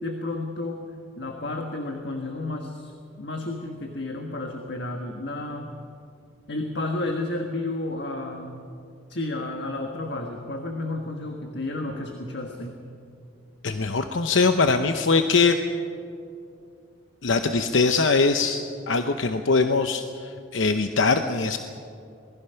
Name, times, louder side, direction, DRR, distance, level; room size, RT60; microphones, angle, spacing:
voice 1, 0.0-0.8 1.2-5.7 6.5-8.6 9.1-12.8, left 2 dB, 55° left, 3 dB, 1.6 m, -32 dB
voice 2, 13.6-15.6 17.2-21.6, left 4 dB, 75° left, 7 dB, 0.8 m, -22 dB
26.5 x 19.5 x 5.7 m, 2.5 s
head